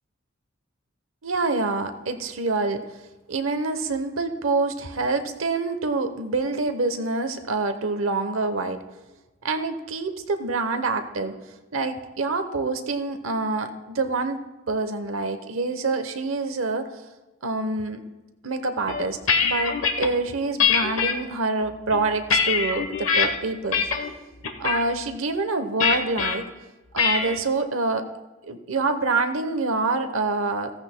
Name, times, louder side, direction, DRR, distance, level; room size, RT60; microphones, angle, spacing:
voice 1, 1.2-2.8 3.3-8.8 9.4-11.3 11.7-16.9 17.4-18.0 18.4-23.9 24.6-26.4 26.9-28.1 28.4-30.7, right 3 dB, 80° right, 8 dB, 0.9 m, -26 dB
sound 1, 18.9-20.1 20.6-21.1 21.7-23.3 23.7-24.1 24.4-24.8 25.8-26.3 27.0-27.4, left 6 dB, 85° left, 1.0 m, -23 dB
15.5 x 14.5 x 2.2 m, 1.1 s
head